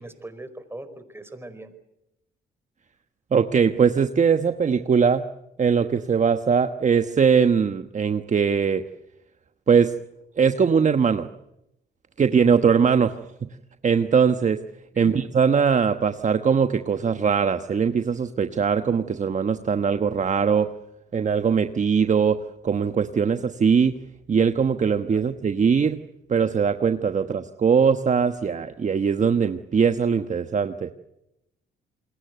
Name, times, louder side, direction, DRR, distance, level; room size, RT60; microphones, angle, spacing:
voice 1, 0.0-1.7 13.0-13.2 14.9-15.1 25.1-25.2, right 2 dB, 10° right, 10 dB, 4.8 m, -40 dB
voice 2, 3.3-5.2 5.6-8.8 9.7-9.9 10.4-11.3 12.2-13.1 13.8-14.6 15.0-20.7 21.1-24.0 24.3-26.0 26.3-30.9, right 6 dB, 40° right, 9 dB, 1.2 m, -21 dB
28.5 x 21.5 x 8.1 m, 0.89 s
cardioid pair, 90°, 20 cm